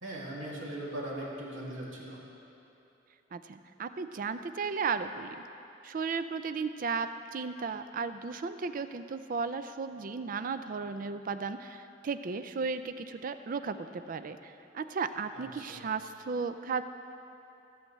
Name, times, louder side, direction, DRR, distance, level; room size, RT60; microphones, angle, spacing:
voice 1, 0.0-2.2 15.3-15.4 15.7-15.8, right 1 dB, 90° right, -5 dB, 2.2 m, -39 dB
voice 2, 3.3-5.4 5.8-16.8, right 5 dB, 45° right, 11 dB, 0.4 m, -35 dB
17.0 x 7.8 x 3.1 m, 2.9 s
head